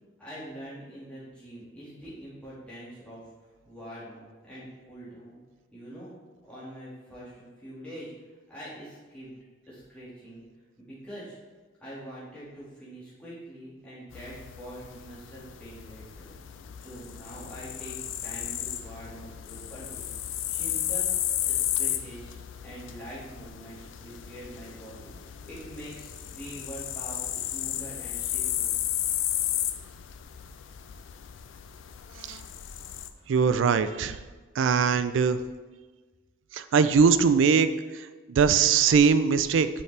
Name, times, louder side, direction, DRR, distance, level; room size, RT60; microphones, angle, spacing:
voice 1, 0.2-5.4 5.7-6.1 6.4-8.1 8.5-9.4 9.7-10.4 10.8-11.4 11.8-16.4 16.8-18.0 18.2-20.1 20.5-21.1 21.5-28.7 33.2-33.3, equal, 5° left, -10 dB, 1.9 m, -44 dB
sound 1, 14.1-33.1, left 12 dB, 65° left, 0.4 m, -34 dB
voice 2, 33.3-34.2 34.6-35.4 36.5-39.7, right 6 dB, 65° right, 12 dB, 0.3 m, -22 dB
6.8 x 5.1 x 3.3 m, 1.3 s
head